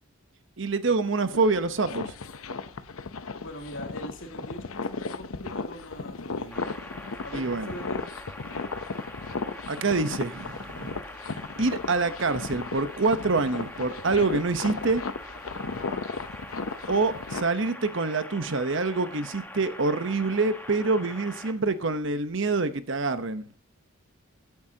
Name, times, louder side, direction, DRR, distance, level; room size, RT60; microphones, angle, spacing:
voice 1, 0.6-2.1 7.3-7.7 9.7-11.0 11.6-15.0 16.9-23.5, right 3 dB, 60° right, 0.9 m, -26 dB
sound 1, 1.3-17.4, left 4 dB, 80° left, 0.8 m, -36 dB
voice 2, 2.5-2.9 3.4-6.7 7.2-8.1 15.6-16.1, equal, 65° left, 2.7 m, -42 dB
sound 2, 6.5-21.5, left 1 dB, 10° left, 1.3 m, -43 dB
16.5 x 9.5 x 2.8 m
head